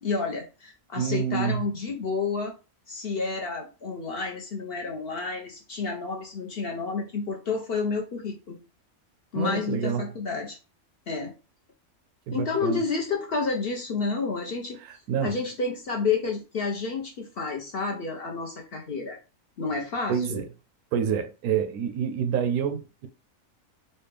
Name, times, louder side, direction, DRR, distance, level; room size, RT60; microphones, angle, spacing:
voice 1, 0.0-2.5 2.9-8.6 9.3-10.6 11.1-11.3 12.3-14.8 15.2-19.2 19.6-20.4, left 4 dB, 55° left, 0.7 m, -30 dB
voice 2, 1.0-1.6 9.4-10.1 12.3-12.8 15.1-15.4 20.1-20.4 20.9-23.1, right 7 dB, 85° right, 1.1 m, -27 dB
4.1 x 2.2 x 3.3 m
omnidirectional pair, 1.5 m